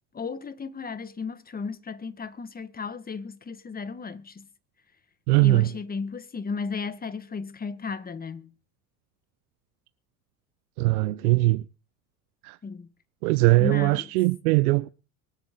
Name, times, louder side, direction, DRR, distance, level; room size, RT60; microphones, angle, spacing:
voice 1, 0.1-4.5 5.4-8.5 12.6-12.9 13.6-14.1, left 5 dB, 20° left, 1.5 m, -34 dB
voice 2, 5.3-5.7 10.8-11.6 12.4-12.6 13.2-14.9, right 20 dB, 85° right, 0.7 m, -21 dB
24.0 x 8.3 x 3.8 m
supercardioid pair, 90°, 43 cm